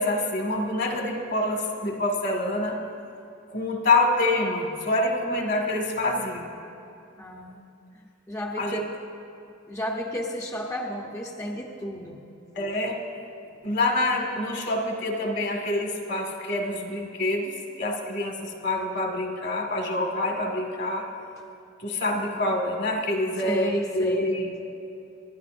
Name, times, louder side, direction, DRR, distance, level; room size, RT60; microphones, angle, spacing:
voice 1, 0.0-2.8 3.5-6.5 8.6-8.8 12.6-13.0 13.6-21.1 21.8-24.5, left 2 dB, 60° left, 1 dB, 1.8 m, -26 dB
voice 2, 7.2-7.6 8.3-9.0 9.7-12.2 23.4-24.3, equal, 15° left, -1 dB, 0.7 m, -32 dB
25.0 x 11.5 x 2.6 m, 2.7 s
head